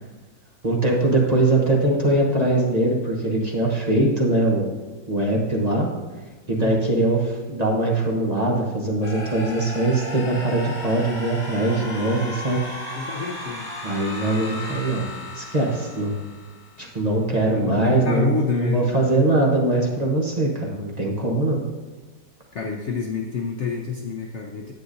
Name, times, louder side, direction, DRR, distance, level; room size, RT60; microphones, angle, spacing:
voice 1, 0.6-4.7 5.1-5.9 6.5-12.6 13.8-15.0 15.3-16.3 16.8-21.6, right 2 dB, 30° right, -2 dB, 0.9 m, -22 dB
sound 1, 9.0-16.9, left 2 dB, 50° left, 2.1 m, -35 dB
voice 2, 13.0-13.7 17.3-18.9 22.5-24.7, left 5 dB, 70° left, 2 dB, 0.6 m, -28 dB
10.5 x 8.0 x 2.6 m, 1.2 s
omnidirectional pair, 2.0 m